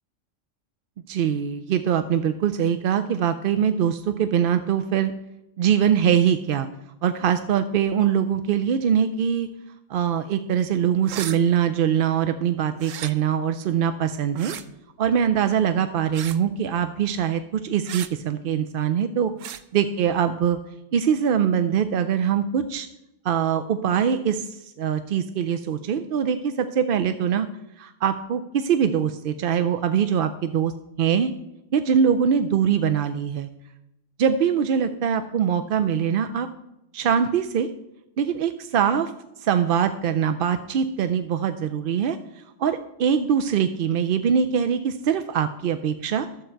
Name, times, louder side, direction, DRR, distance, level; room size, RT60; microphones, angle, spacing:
voice 1, 1.1-5.1 5.6-6.7 7.0-9.5 9.9-14.5 15.0-19.3 19.7-20.6 20.9-22.9 23.2-27.5 27.8-30.7 31.0-31.3 31.7-33.5 34.2-36.5 36.9-37.7 38.2-39.1 39.4-46.3, right 8 dB, 60° right, 9 dB, 0.6 m, -23 dB
sound 1, 11.0-11.4 12.8-13.1 14.3-14.6 16.1-16.4 17.9-18.1 19.4-19.6, right 10 dB, 90° right, 1.0 m, -34 dB
12.0 x 7.5 x 4.5 m, 0.88 s
omnidirectional pair, 1.3 m